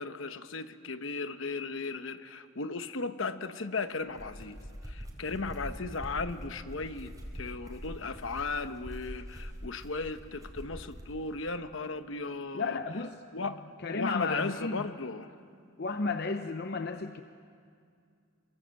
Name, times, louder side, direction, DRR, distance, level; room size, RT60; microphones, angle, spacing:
voice 1, 0.0-4.6 4.9-12.8 13.3-15.3, left 3 dB, 65° left, 10 dB, 1.1 m, -36 dB
sound 1, 4.0-11.1, equal, 15° right, 3.9 m, -44 dB
voice 2, 12.5-13.2 13.8-14.9 15.8-17.2, left 4 dB, 50° left, 7 dB, 0.8 m, -33 dB
26.5 x 23.5 x 7.7 m, 2.3 s
head